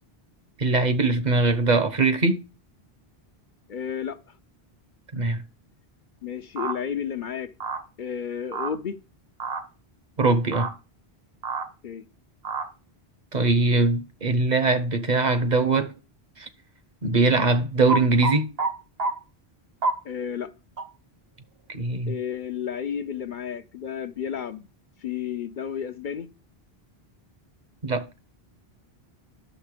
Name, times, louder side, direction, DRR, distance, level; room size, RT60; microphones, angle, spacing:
voice 1, 0.6-2.4 5.1-5.4 10.2-10.7 13.3-15.9 16.4-16.5 17.0-18.5 21.7-22.1 27.8-28.0, right 3 dB, 45° right, 0.9 m, -22 dB
voice 2, 3.7-4.2 6.2-7.5 8.0-9.0 11.8-12.0 20.0-20.5 22.1-24.7 25.0-26.3, left 8 dB, 55° left, 0.7 m, -32 dB
sound 1, 6.6-6.8 7.6-7.8 8.5-8.7 9.4-9.6 10.5-10.7 11.4-11.7 12.4-12.7 17.9-18.7 19.0-19.1 19.8-20.0 20.8-20.9, right 3 dB, 70° right, 1.5 m, -27 dB
11.0 x 6.6 x 4.9 m
omnidirectional pair, 1.0 m